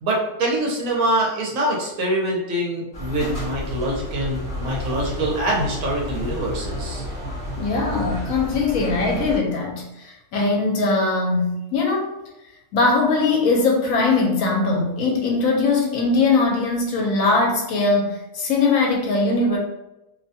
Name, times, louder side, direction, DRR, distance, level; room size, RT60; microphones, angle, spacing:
voice 1, 0.0-7.0, right 1 dB, 70° right, -2 dB, 1.0 m, -24 dB
sound 1, 2.9-9.4, equal, 40° left, 0.9 m, -31 dB
voice 2, 7.6-12.1 12.7-19.6, left 3 dB, 70° left, -1 dB, 1.0 m, -21 dB
2.7 x 2.2 x 2.7 m, 0.91 s
omnidirectional pair, 1.6 m